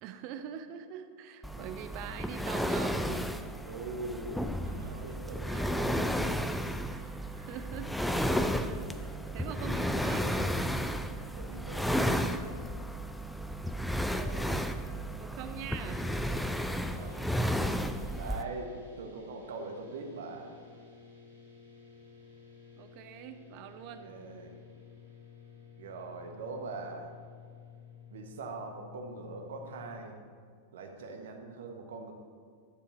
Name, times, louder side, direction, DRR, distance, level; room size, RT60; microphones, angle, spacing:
voice 1, 0.0-3.3 5.5-5.6 6.9-10.6 13.9-14.8 15.2-16.0 22.8-24.2, right 8 dB, 45° right, 8 dB, 0.7 m, -44 dB
sound 1, 1.4-18.4, equal, ahead, 0.5 m, -33 dB
voice 2, 3.6-6.8 7.3-7.6 9.2-9.8 11.3-12.7 16.9-17.3 18.1-20.6 24.0-24.6 25.8-27.1 28.1-30.2 30.7-32.1, right 3 dB, 60° right, 3 dB, 1.3 m, -43 dB
sound 2, 15.8-30.1, left 6 dB, 75° right, 2.5 m, -54 dB
11.0 x 6.9 x 4.9 m, 2.1 s
figure-of-eight pair, 90°, 0 cm